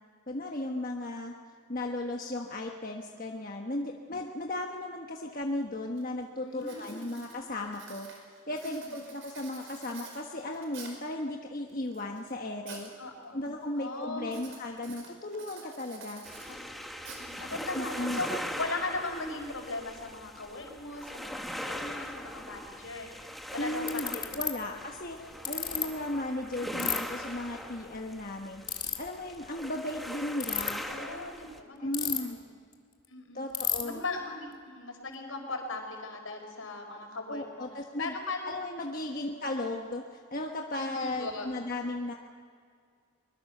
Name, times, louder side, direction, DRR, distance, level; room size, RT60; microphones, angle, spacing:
voice 1, 0.3-1.3 1.7-8.1 8.5-12.9 13.3-16.2 17.7-18.2 23.6-28.6 29.0-30.8 31.8-32.4 33.3-34.0 37.3-38.1 38.5-42.1, left 1 dB, 40° left, 1 dB, 1.3 m, -36 dB
Writing, 5.4-5.5 6.0-6.2 6.6-11.1 11.7-12.9 13.2-13.6 14.2-17.6, right 4 dB, 60° right, 5.4 m, -49 dB
voice 2, 6.4-7.0 8.6-9.0 13.0-13.4 13.8-14.4 15.6-15.7 16.4-16.6 17.1-23.1 23.5-24.3 30.8-32.5 33.1-33.5 33.8-37.7 38.0-38.6 39.1-39.4 40.7-41.5, left 3 dB, 75° left, 3 dB, 4.9 m, -38 dB
sound 1, 16.3-31.6, equal, ahead, 1.4 m, -41 dB
Ratchet pawl, 23.2-23.3 23.9-24.5 25.4-25.8 26.8-27.0 28.6-28.9 30.3-30.7 31.9-32.4 32.7-32.8 33.0-33.1 33.5-33.8, left 8 dB, 20° left, 2.0 m, -30 dB
24.0 x 21.5 x 6.7 m, 2.1 s
head